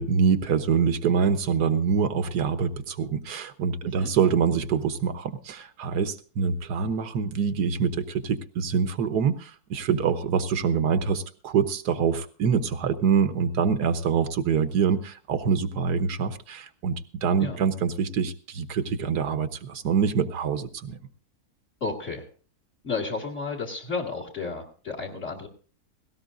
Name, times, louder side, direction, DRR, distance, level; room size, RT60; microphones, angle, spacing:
voice 1, 0.0-21.0, right 6 dB, 80° right, 10 dB, 1.5 m, -25 dB
voice 2, 3.8-4.1 17.4-17.6 21.8-22.3 22.8-25.5, left 4 dB, 45° left, 3 dB, 2.3 m, -32 dB
18.0 x 17.5 x 2.6 m, 0.40 s
omnidirectional pair, 1.7 m